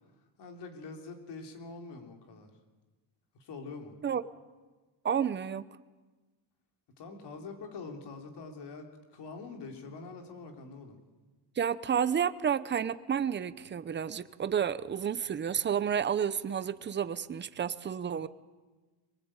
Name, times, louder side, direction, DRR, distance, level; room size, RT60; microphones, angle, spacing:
voice 1, 0.2-2.5 3.3-3.9 7.0-11.0, left 4 dB, 55° left, 4 dB, 3.6 m, -45 dB
voice 2, 5.0-5.7 11.6-18.3, right 8 dB, 25° right, 14 dB, 0.7 m, -30 dB
23.5 x 20.0 x 8.9 m, 1.3 s
cardioid pair, 165°, 48 cm